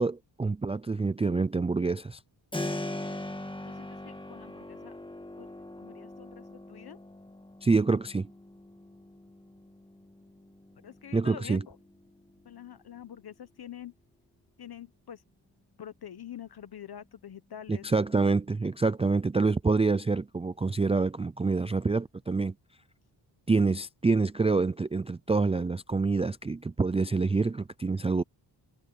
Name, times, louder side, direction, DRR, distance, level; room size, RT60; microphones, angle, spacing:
voice 1, 0.0-2.2 7.6-8.3 11.1-11.6 17.8-22.5 23.5-28.2, right 3 dB, 15° right, 0.4 m, -26 dB
Keyboard (musical), 2.5-13.2, left 1 dB, 10° left, 1.7 m, -42 dB
voice 2, 3.6-5.0 5.4-5.5 5.8-7.0 10.8-11.8 12.4-13.9 14.6-15.2 15.8-17.9, left 9 dB, 55° left, 1.0 m, -46 dB
cardioid pair, 95°, 46 cm